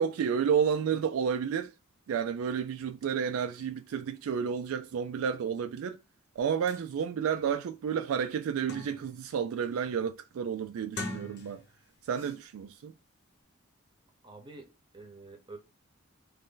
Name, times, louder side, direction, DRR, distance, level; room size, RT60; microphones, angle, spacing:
voice 1, 0.0-1.7 2.1-6.0 6.4-11.6 12.0-12.9, right 7 dB, 75° right, 0.3 m, -31 dB
sound 1, 6.4-6.5 6.7-6.8 7.4-7.5 7.9-9.2 9.6-10.0 10.8-11.8 12.1-12.4, left 2 dB, 50° left, 0.9 m, -42 dB
voice 2, 14.2-15.6, right 3 dB, 20° right, 0.8 m, -48 dB
3.1 x 2.6 x 3.7 m
head